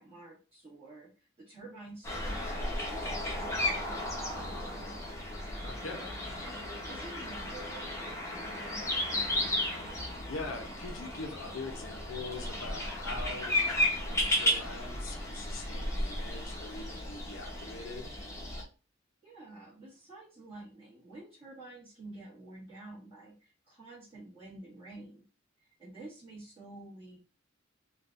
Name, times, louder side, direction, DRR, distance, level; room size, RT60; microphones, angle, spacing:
voice 1, 0.0-4.5 6.4-10.1 19.2-25.2 25.6-27.2, right 2 dB, 30° right, -10 dB, 1.5 m, -50 dB
sound 1, 2.0-18.6, left 1 dB, 15° left, 0.8 m, -34 dB
voice 2, 5.6-6.2 10.3-13.6 14.0-18.1, left 3 dB, 85° left, 3 dB, 0.7 m, -42 dB
3.8 x 2.4 x 2.5 m, 0.33 s
head